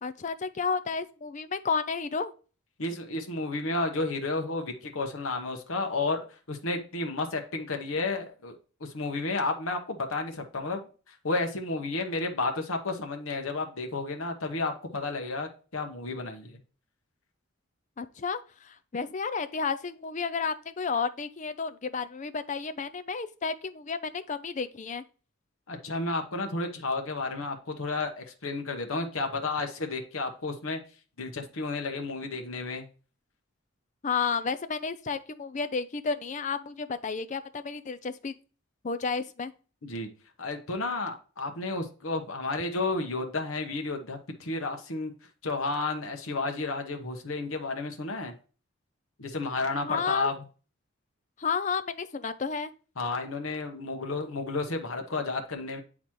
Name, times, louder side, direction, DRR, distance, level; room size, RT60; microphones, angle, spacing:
voice 1, 0.0-2.3 18.0-25.0 34.0-38.3 38.8-39.5 49.8-50.3 51.4-52.7, left 5 dB, 35° left, 0.4 m, -32 dB
voice 2, 2.8-6.2 6.5-16.6 25.7-30.8 31.2-32.9 39.8-40.1 40.4-45.1 45.4-48.3 49.2-50.4 53.0-55.8, left 3 dB, 75° left, 1.1 m, -32 dB
8.6 x 4.0 x 3.0 m
head